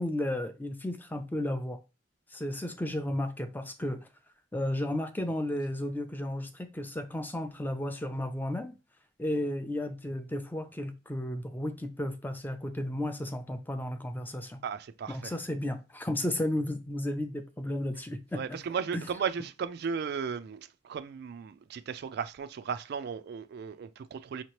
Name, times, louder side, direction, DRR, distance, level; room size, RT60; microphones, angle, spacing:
voice 1, 0.0-1.8 2.3-4.0 4.5-8.7 9.2-14.6 15.1-18.6 18.9-19.1, left 1 dB, 10° left, 0.4 m, -33 dB
voice 2, 14.6-15.3 18.3-24.4, right 6 dB, 55° right, 0.3 m, -35 dB
5.6 x 2.9 x 3.1 m
head